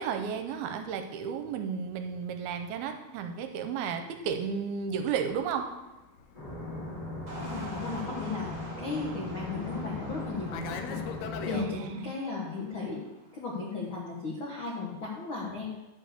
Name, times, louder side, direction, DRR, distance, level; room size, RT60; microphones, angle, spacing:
voice 1, 0.0-5.7 11.5-12.1, right 6 dB, 80° right, 6 dB, 2.5 m, -33 dB
Fixed-wing aircraft airplane, 5.3-11.7, left 7 dB, 85° left, 2.8 m, -44 dB
sound 1, 6.3-11.7, left 2 dB, 15° left, 1.5 m, -38 dB
sound 2, 7.3-13.7, right 1 dB, 30° right, 0.7 m, -47 dB
voice 2, 7.4-8.5 8.8-11.0 11.4-13.0 13.3-15.7, left 4 dB, 65° left, -4 dB, 1.3 m, -35 dB
11.0 x 4.6 x 7.8 m, 1.0 s
omnidirectional pair, 4.6 m